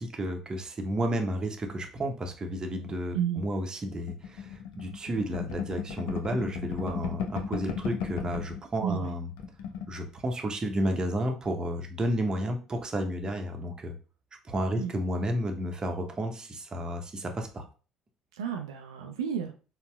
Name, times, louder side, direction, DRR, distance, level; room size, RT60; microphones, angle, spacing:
voice 1, 0.0-9.3 9.9-13.9 14.4-17.6, equal, 30° right, 4 dB, 0.7 m, -32 dB
sound 1, 4.1-8.6 8.9-9.1 9.3-9.9, left 7 dB, 70° left, 0.5 m, -34 dB
voice 2, 8.8-9.1 14.8-14.9 18.3-19.5, right 8 dB, 85° right, 4 dB, 0.3 m, -31 dB
4.0 x 2.1 x 2.2 m, 0.35 s
hypercardioid pair, 60°, 2 cm